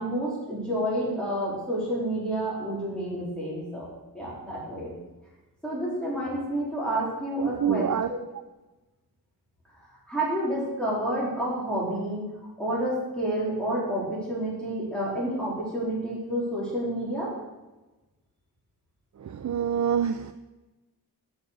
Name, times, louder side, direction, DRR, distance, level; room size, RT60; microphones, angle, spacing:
voice 1, 0.0-3.9 4.1-4.9 5.6-8.2 10.1-12.2 12.6-17.3, right 1 dB, ahead, -8 dB, 4.1 m, -29 dB
voice 2, 7.4-8.1 19.2-20.3, right 8 dB, 50° right, 9 dB, 0.5 m, -26 dB
9.1 x 7.1 x 6.8 m, 1.1 s
wide cardioid pair, 95°, 38 cm